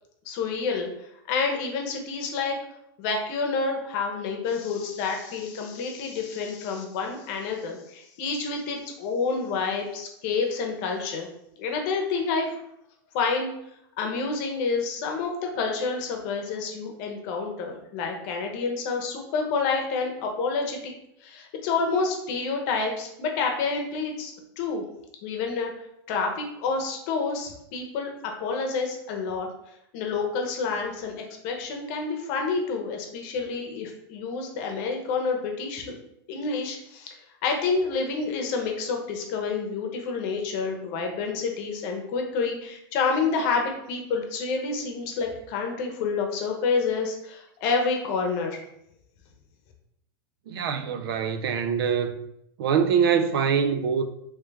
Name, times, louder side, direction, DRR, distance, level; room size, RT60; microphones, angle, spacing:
voice 1, 0.2-2.5 3.0-11.3 11.6-12.6 13.1-13.5 14.0-20.9 21.2-24.8 25.2-25.7 26.1-28.1 28.4-29.5 29.9-36.0 36.3-37.2 37.4-48.6, left 4 dB, 45° left, 0.8 m, -28 dB
voice 2, 50.5-52.1 52.6-54.1, right 7 dB, 70° right, 0.4 m, -24 dB
3.2 x 3.2 x 3.4 m
supercardioid pair, 155°, 13 cm